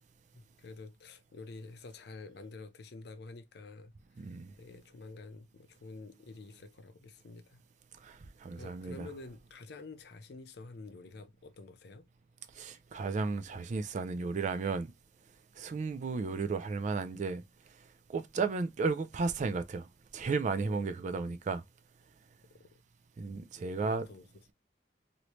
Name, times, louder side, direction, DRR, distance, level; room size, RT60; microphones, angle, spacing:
voice 1, 0.3-7.6 8.6-12.0 20.6-21.2 22.6-22.8 23.8-24.2, left 3 dB, 65° left, 0.5 m, -49 dB
voice 2, 4.2-4.5 8.0-9.1 12.6-14.9 15.6-17.4 18.1-19.9 20.1-21.6 23.2-24.1, right 4 dB, 40° right, 0.3 m, -34 dB
3.1 x 2.7 x 3.0 m
head